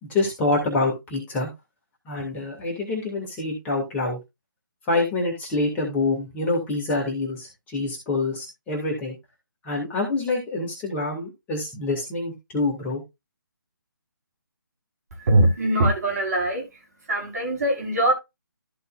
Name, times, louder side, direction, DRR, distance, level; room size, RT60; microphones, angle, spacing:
voice 1, 0.1-1.5 2.1-4.2 4.9-9.2 9.6-13.0, left 2 dB, 10° left, 2.5 m, -26 dB
voice 2, 15.1-16.7 17.1-18.1, right 1 dB, 50° right, 4.7 m, -21 dB
14.5 x 5.4 x 2.6 m
figure-of-eight pair, 145°, 11 cm